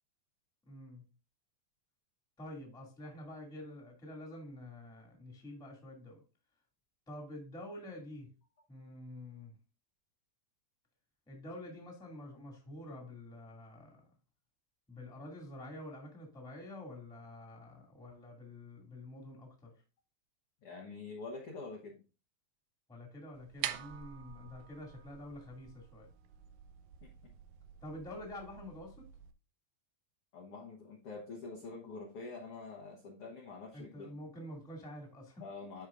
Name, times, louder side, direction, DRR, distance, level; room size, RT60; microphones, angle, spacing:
voice 1, 0.7-1.0 2.4-6.2 7.1-8.3 8.7-9.5 11.3-14.1 14.9-19.7 22.9-26.1 27.8-29.1 33.7-35.4, left 1 dB, ahead, 0 dB, 1.2 m, -48 dB
voice 2, 20.6-22.0 27.0-27.3 30.3-34.1 35.4-35.9, left 3 dB, 75° left, 1 dB, 1.3 m, -46 dB
sound 1, 23.3-29.3, right 12 dB, 90° right, 2.4 m, -46 dB
11.0 x 4.8 x 2.4 m, 0.33 s
omnidirectional pair, 4.1 m